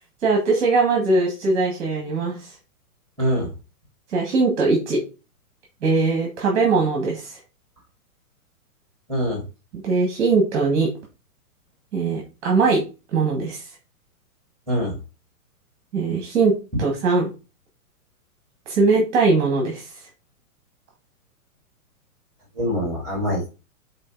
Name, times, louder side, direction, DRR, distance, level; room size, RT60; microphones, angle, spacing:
voice 1, 0.2-2.5 4.1-5.0 5.8-7.4 9.7-10.9 11.9-12.8 13.1-13.7 15.9-17.3 18.7-19.9, right 3 dB, 15° right, 0 dB, 1.3 m, -21 dB
voice 2, 9.1-9.4 14.7-14.9 22.6-23.5, equal, 5° left, -5 dB, 2.1 m, -23 dB
6.2 x 4.1 x 4.5 m, 0.30 s
hypercardioid pair, 180°, 45 cm